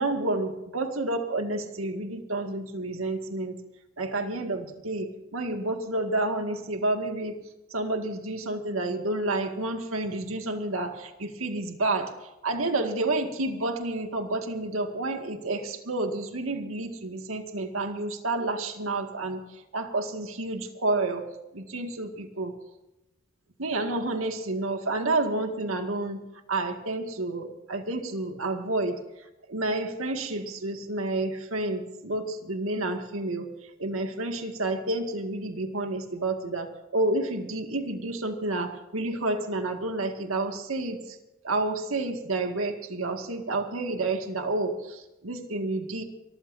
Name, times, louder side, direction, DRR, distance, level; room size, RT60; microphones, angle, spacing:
voice 1, 0.0-3.6 4.0-7.4 7.7-12.1 12.4-19.4 19.7-21.2 21.5-22.5 23.6-26.2 26.5-29.0 29.5-33.5 33.8-41.0 41.4-46.0, right 2 dB, 85° right, 5 dB, 2.0 m, -30 dB
25.0 x 15.0 x 2.7 m, 0.96 s
head